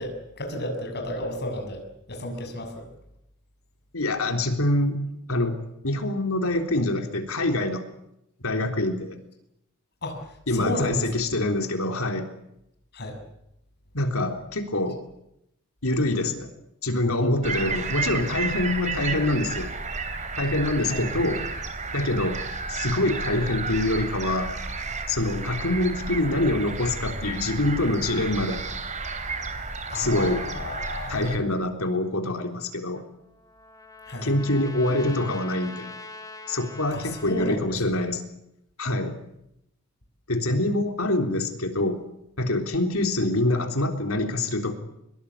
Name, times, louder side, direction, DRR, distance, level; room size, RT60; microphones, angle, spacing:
voice 1, 0.0-2.9 10.0-10.3 10.5-11.1 12.9-13.2 20.8-21.1 29.9-31.1 34.1-34.3 36.9-38.1, left 1 dB, 50° left, 4 dB, 6.9 m, -32 dB
voice 2, 3.9-5.0 5.3-5.6 5.8-7.8 8.4-9.2 10.5-12.3 13.9-15.0 15.8-16.5 16.8-19.7 20.4-21.4 21.9-24.5 25.1-28.7 29.9-30.5 31.1-33.0 34.2-35.9 36.5-38.2 38.8-39.2 40.3-42.0 42.4-44.7, left 1 dB, 70° left, 5 dB, 3.7 m, -25 dB
sound 1, 17.4-31.4, right 4 dB, 35° right, 3.3 m, -32 dB
Trumpet, 32.9-37.6, left 2 dB, 15° left, 3.1 m, -43 dB
23.5 x 22.0 x 8.6 m, 0.81 s
head